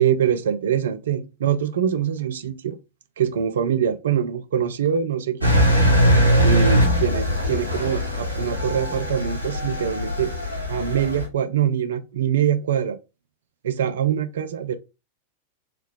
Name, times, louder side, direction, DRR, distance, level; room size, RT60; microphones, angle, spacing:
voice 1, 0.0-2.8 3.2-5.6 6.4-10.3 10.7-13.0 13.6-14.8, right 9 dB, 60° right, 0.4 m, -24 dB
Engine, 5.4-11.2, equal, 85° left, 0.8 m, -21 dB
3.2 x 2.3 x 3.3 m
figure-of-eight pair, 90°, 0 cm